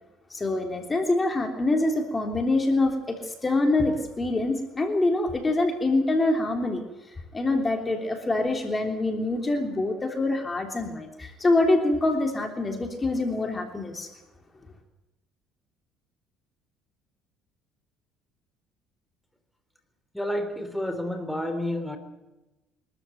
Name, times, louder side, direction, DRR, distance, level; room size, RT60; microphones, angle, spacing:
voice 1, 0.3-6.8 7.1-14.1, left 2 dB, 25° left, 4 dB, 3.3 m, -25 dB
voice 2, 20.1-22.0, left 1 dB, 5° left, 6 dB, 3.6 m, -30 dB
24.5 x 14.0 x 9.2 m, 1.0 s
supercardioid pair, 90°, 0 cm